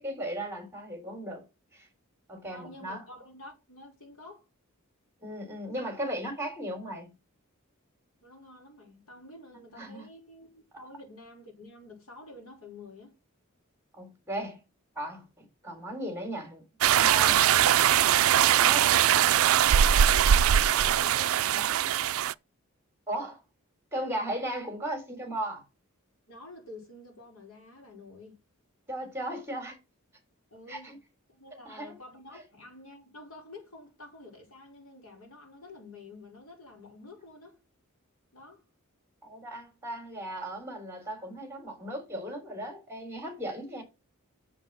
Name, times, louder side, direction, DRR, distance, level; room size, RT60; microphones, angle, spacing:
voice 1, 0.0-1.4 1.7-1.9 2.3-3.0 5.2-7.1 9.5-10.1 13.9-14.6 15.0-16.6 17.0-17.5 18.4-18.8 23.1-23.4 23.9-25.6 28.9-29.8 30.7-31.0 31.7-31.9 32.3-32.4 39.2-43.8, right 1 dB, 10° right, 3.6 m, -36 dB
voice 2, 2.5-4.4 8.2-13.2 17.4-17.6 18.6-19.3 19.7-21.9 26.3-28.4 30.5-31.0 31.3-37.6 38.3-38.6, left 2 dB, 70° left, 5.4 m, -48 dB
sound 1, 16.8-22.3, right 10 dB, 75° right, 0.4 m, -21 dB
7.0 x 6.2 x 6.5 m
head